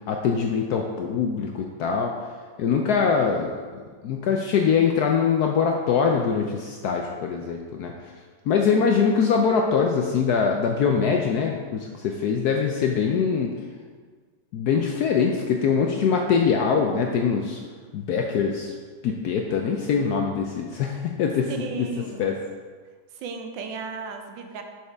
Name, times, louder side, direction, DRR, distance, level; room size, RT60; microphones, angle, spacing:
voice 1, 0.1-2.1 2.6-7.9 8.5-13.5 14.5-17.6 17.9-18.7 19.0-21.5 22.2-22.3, left 6 dB, 75° left, 2 dB, 0.9 m, -23 dB
voice 2, 21.5-22.3 23.1-24.6, right 5 dB, 75° right, 4 dB, 1.4 m, -35 dB
6.8 x 6.4 x 3.4 m, 1.5 s
omnidirectional pair, 2.1 m